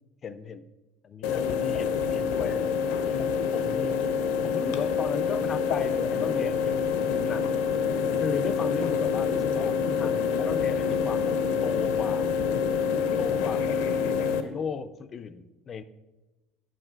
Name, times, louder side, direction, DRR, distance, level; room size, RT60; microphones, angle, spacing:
voice 1, 0.2-0.6 1.0-4.1 4.4-7.7 8.2-11.3 11.6-12.3 13.2-13.8 14.2-15.8, left 6 dB, 25° left, 14 dB, 0.3 m, -36 dB
sound 1, 1.2-14.4, left 6 dB, 85° left, 0.7 m, -26 dB
8.7 x 6.1 x 4.4 m, 1.1 s
cardioid pair, 180°, 0 cm